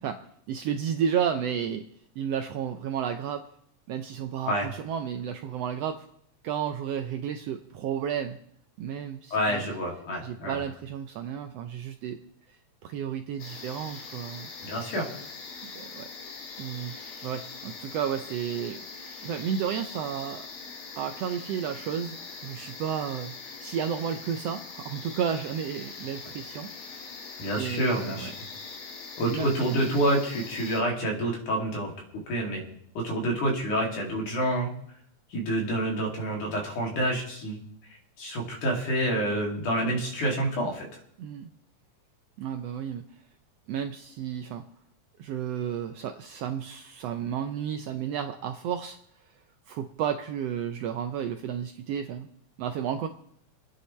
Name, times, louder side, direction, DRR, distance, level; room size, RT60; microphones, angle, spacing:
voice 1, 0.0-1.8 2.2-3.4 3.9-6.0 6.4-8.4 8.8-9.7 10.2-12.2 12.5-14.5 15.6-16.1 16.6-18.8 19.2-20.5 21.0-22.2 22.4-26.7 27.6-28.3 29.2-29.8 41.2-41.5 42.4-43.0 43.7-44.6 45.2-49.0 49.7-52.3 52.6-53.1, right 8 dB, 80° right, 7 dB, 1.4 m, -32 dB
voice 2, 9.3-10.6 14.6-15.0 27.4-28.3 29.2-31.9 32.3-32.6 33.0-34.7 35.3-37.6 38.2-40.9, right 1 dB, 85° left, -1 dB, 4.0 m, -28 dB
sound 1, 13.4-30.8, left 4 dB, 60° left, 2.7 m, -42 dB
26.5 x 9.8 x 3.2 m, 0.69 s
omnidirectional pair, 3.4 m